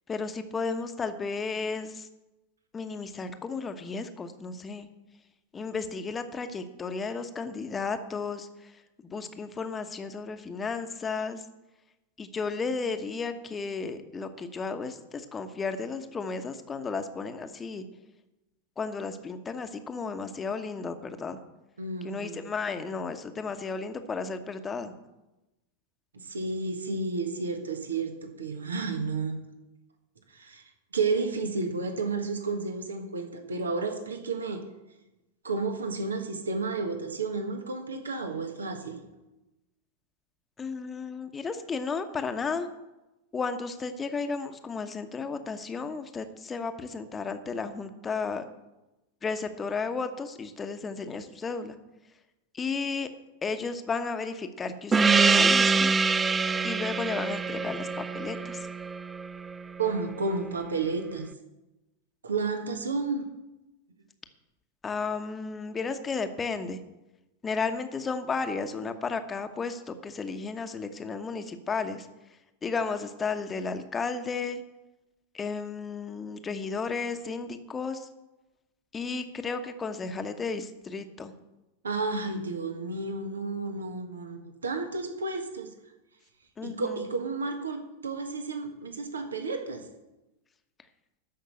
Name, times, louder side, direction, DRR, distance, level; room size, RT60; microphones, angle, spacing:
voice 1, 0.1-2.1 2.7-4.9 5.5-11.4 12.2-17.8 18.8-21.4 22.0-24.9 40.6-42.7 43.3-48.4 49.2-51.8 52.5-53.1 53.4-55.9 56.6-58.7 64.8-66.8 67.4-72.1 72.6-74.6 75.3-78.1 78.9-81.3 86.6-87.0, left 4 dB, 20° left, 8 dB, 1.1 m, -33 dB
voice 2, 21.8-22.5 26.1-29.4 30.3-30.6 30.9-34.6 35.4-39.0 59.8-61.3 62.2-63.3 81.8-85.7 86.6-89.8, right 3 dB, 70° right, 6 dB, 1.5 m, -31 dB
Gong, 54.9-59.9, right 4 dB, 15° right, 0.4 m, -25 dB
13.0 x 5.8 x 7.8 m, 1.0 s
figure-of-eight pair, 90°, 0 cm